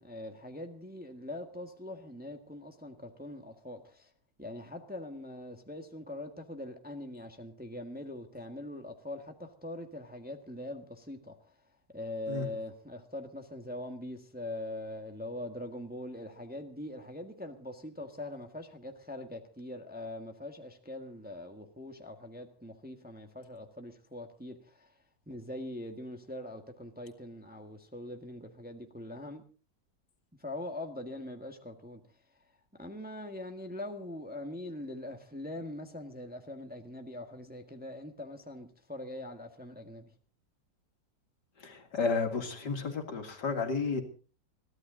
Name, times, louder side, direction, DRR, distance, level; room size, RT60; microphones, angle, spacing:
voice 1, 0.0-4.1 4.4-11.5 11.9-25.0 25.3-29.4 30.4-32.0 32.8-40.1, left 1 dB, 5° right, 1.4 m, -42 dB
voice 2, 41.6-44.0, left 4 dB, 65° left, 2.7 m, -32 dB
22.5 x 15.0 x 3.9 m
omnidirectional pair, 2.0 m